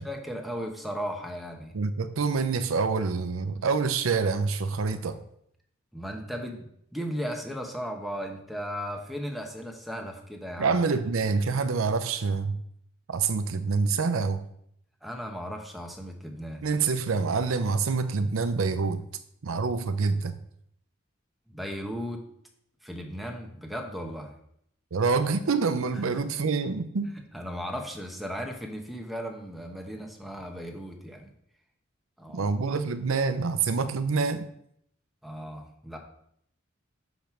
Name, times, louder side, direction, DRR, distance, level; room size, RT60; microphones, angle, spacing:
voice 1, 0.0-1.7 5.9-10.8 15.0-16.7 21.5-22.2 22.8-24.3 25.9-26.0 27.0-31.3 32.2-32.5 35.2-36.0, equal, ahead, 2 dB, 1.0 m, -36 dB
voice 2, 1.7-5.2 10.6-12.6 13.1-14.4 16.6-19.0 19.4-20.3 24.9-27.1 32.3-34.5, right 4 dB, 85° right, 10 dB, 0.6 m, -26 dB
6.0 x 5.2 x 5.8 m, 0.71 s
head